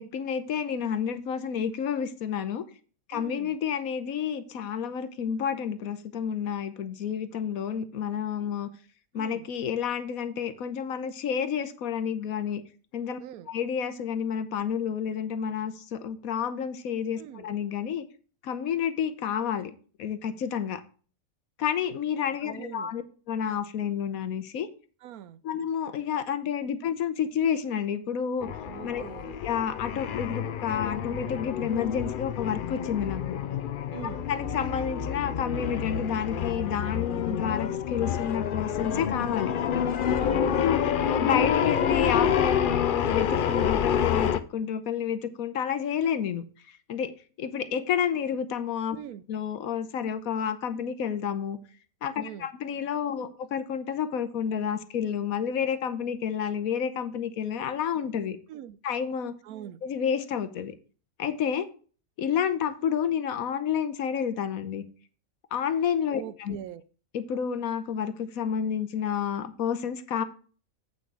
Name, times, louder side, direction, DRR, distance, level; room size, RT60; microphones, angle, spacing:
voice 1, 0.0-2.6 3.1-8.7 9.1-12.6 12.9-13.2 13.5-18.0 18.4-19.7 20.0-20.8 21.6-24.7 25.4-28.5 28.8-29.0 29.4-33.4 34.3-39.5 40.6-40.8 41.1-46.4 46.9-47.1 47.4-49.0 49.3-51.6 52.0-58.4 58.8-59.3 59.8-60.7 61.2-61.7 62.2-64.8 65.5-66.6 67.1-70.2, left 8 dB, 80° left, 1.3 m, -30 dB
voice 2, 3.1-3.6 9.1-9.5 13.2-13.5 17.2-17.5 22.4-22.9 25.0-25.4 28.6-29.4 33.9-34.3 40.2-40.8 48.9-49.2 52.2-52.5 53.1-53.3 58.5-58.8 59.4-59.8 66.1-66.8, right 11 dB, 90° right, 1.1 m, -42 dB
sound 1, 28.4-44.4, left 8 dB, 60° left, 0.5 m, -28 dB
8.1 x 6.3 x 4.8 m
omnidirectional pair, 1.5 m